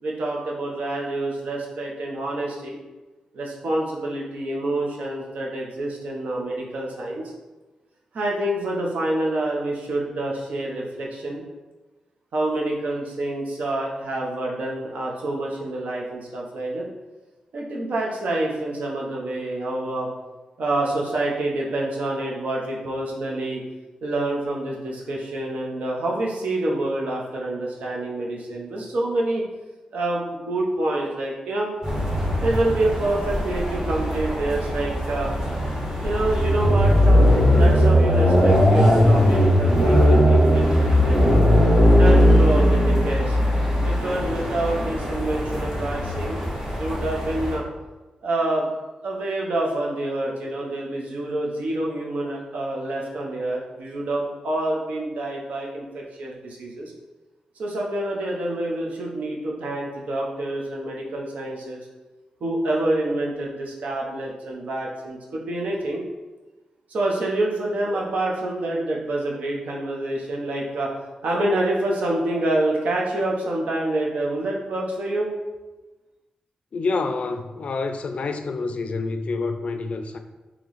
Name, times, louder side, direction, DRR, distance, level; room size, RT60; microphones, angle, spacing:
voice 1, 0.0-2.8 3.3-7.2 8.1-11.4 12.3-16.9 17.5-20.1 20.6-23.6 24.0-29.4 29.9-31.7 32.4-35.3 36.0-41.4 41.9-43.4 43.8-46.4 46.7-47.6 48.2-48.7 49.0-56.9 57.6-61.8 62.4-66.0 66.9-70.9 71.2-75.3, right 1 dB, 80° right, 0.8 m, -27 dB
sound 1, 31.8-47.6, equal, 30° right, 1.5 m, -19 dB
voice 2, 76.7-80.2, left 3 dB, 60° left, 0.3 m, -27 dB
3.0 x 3.0 x 4.0 m
cardioid pair, 75°, 2 cm